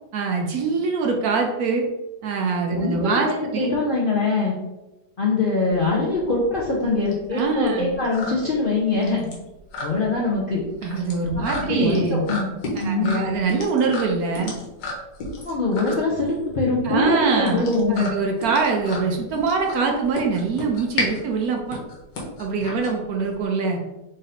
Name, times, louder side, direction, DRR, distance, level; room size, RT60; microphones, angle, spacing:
voice 1, 0.1-1.9 2.2-3.8 7.3-7.9 10.8-12.2 12.8-14.5 15.9-16.0 16.8-17.6 17.9-21.8 22.4-23.8, right 4 dB, 70° right, 1 dB, 1.0 m, -23 dB
voice 2, 2.7-3.2 3.6-4.5 5.2-9.3 9.8-10.6 11.3-12.5 12.8-13.3 15.4-18.1, left 3 dB, 60° left, -4 dB, 0.5 m, -23 dB
sound 1, 5.7-23.4, left 2 dB, 80° left, 1.7 m, -33 dB
3.9 x 2.6 x 4.1 m, 1.0 s
omnidirectional pair, 1.9 m